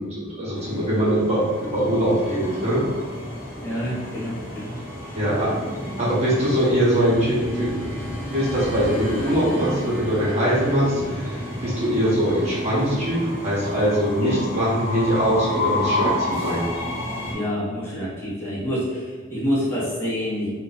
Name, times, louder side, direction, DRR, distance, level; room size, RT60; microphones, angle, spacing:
voice 1, 0.0-2.8 5.1-5.5 6.0-16.6, equal, 35° right, -8 dB, 1.3 m, -22 dB
Train, 0.5-17.3, left 1 dB, 10° right, 1.1 m, -30 dB
voice 2, 3.6-4.8 5.0-5.2 14.2-14.4 17.3-20.5, equal, 10° left, -10 dB, 0.9 m, -27 dB
3.0 x 2.6 x 4.0 m, 1.5 s
head